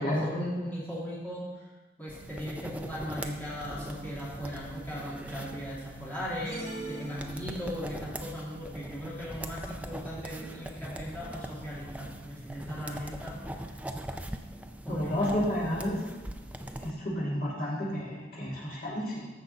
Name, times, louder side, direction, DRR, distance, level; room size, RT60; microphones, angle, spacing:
voice 1, 0.0-1.7 2.0-13.8 14.8-15.4, equal, 10° left, -9 dB, 2.4 m, -38 dB
sound 1, 2.1-16.9, right 1 dB, 5° right, 0.4 m, -42 dB
sound 2, 6.4-8.0, right 2 dB, 25° right, 3.1 m, -41 dB
voice 2, 14.9-16.0 16.8-19.3, left 1 dB, 45° left, -6 dB, 2.8 m, -31 dB
14.0 x 5.6 x 4.1 m, 1.2 s
head